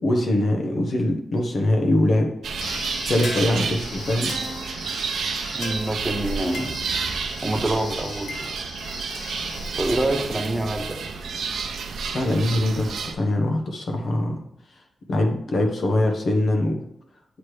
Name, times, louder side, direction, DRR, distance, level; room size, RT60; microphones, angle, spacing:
voice 1, 0.0-2.3 3.0-4.3 11.9-14.4 15.1-16.8, left 1 dB, 55° left, 2 dB, 1.0 m, -22 dB
sound 1, 2.4-13.1, right 5 dB, 90° right, 0.6 m, -30 dB
sound 2, 2.6-11.6, left 2 dB, 85° left, 1.3 m, -38 dB
voice 2, 5.5-6.8 7.4-8.5 9.8-11.0, right 1 dB, 15° right, 3 dB, 0.7 m, -26 dB
8.1 x 3.2 x 4.8 m, 0.79 s
wide cardioid pair, 140°, 0 cm